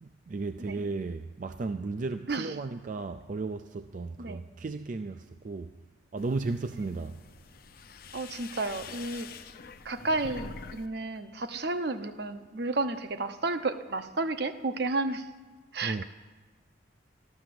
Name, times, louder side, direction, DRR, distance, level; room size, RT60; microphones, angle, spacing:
voice 1, 0.0-5.8 6.1-7.2 15.8-16.0, right 3 dB, 45° right, 0.4 m, -35 dB
sound 1, 6.2-10.9 11.2-11.8, left 4 dB, 50° left, 0.6 m, -45 dB
voice 2, 8.1-9.3 9.8-15.3 15.7-16.0, right 3 dB, 60° right, 0.8 m, -32 dB
12.5 x 12.5 x 7.7 m
head